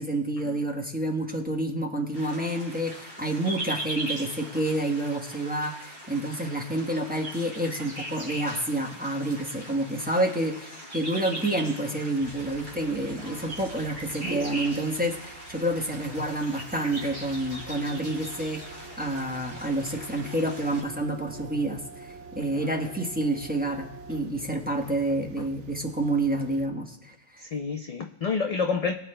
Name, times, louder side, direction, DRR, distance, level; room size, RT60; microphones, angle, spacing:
voice 1, 0.0-18.6 19.0-27.4, right 1 dB, 10° right, 0 dB, 1.0 m, -29 dB
sound 1, 2.1-20.8, right 1 dB, 65° right, 4.5 m, -40 dB
sound 2, 12.2-26.7, right 4 dB, 85° right, 1.3 m, -45 dB
voice 2, 13.2-13.5 22.7-22.9 27.4-28.9, left 5 dB, 50° left, 5 dB, 0.4 m, -29 dB
23.0 x 8.9 x 2.2 m, 1.0 s
omnidirectional pair, 1.2 m